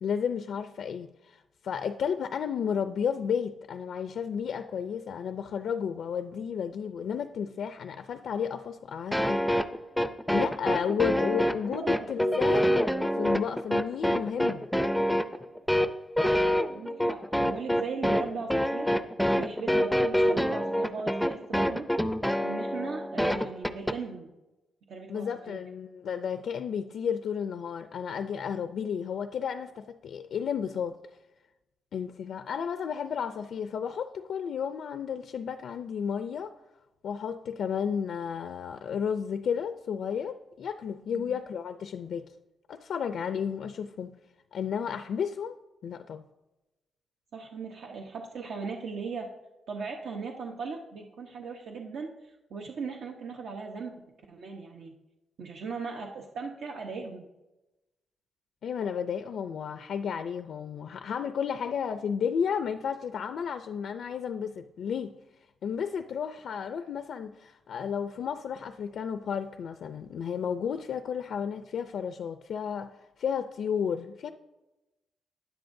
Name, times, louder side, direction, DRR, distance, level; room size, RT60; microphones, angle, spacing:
voice 1, 0.0-9.4 10.3-12.9 13.1-14.6 25.1-31.0 31.9-36.5 37.0-42.3 42.7-44.1 44.5-45.6 45.8-46.2 58.6-65.1 65.6-74.3, left 7 dB, 65° left, 0.4 m, -32 dB
sound 1, 9.1-24.0, equal, ahead, 0.5 m, -26 dB
voice 2, 11.7-12.4 15.7-16.4 16.7-18.9 19.4-21.9 22.4-24.3 24.9-25.6 41.1-41.2 47.3-49.3 49.7-54.0 54.3-54.9 55.4-57.3, right 4 dB, 75° right, 1.0 m, -38 dB
15.5 x 10.0 x 2.7 m
cardioid pair, 135°, 0 cm